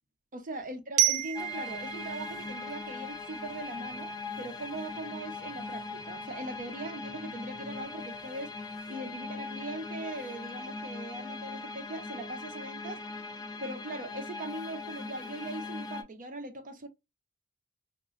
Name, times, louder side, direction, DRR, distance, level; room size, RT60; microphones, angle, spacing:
voice 1, 0.3-8.6 8.9-13.0 13.6-16.9, right 1 dB, 35° right, 0.5 m, -40 dB
Glockenspiel, 1.0-3.8, right 17 dB, 85° right, 0.5 m, -32 dB
sound 1, 1.3-16.0, left 3 dB, 20° left, 0.3 m, -40 dB
2.9 x 2.4 x 2.5 m
head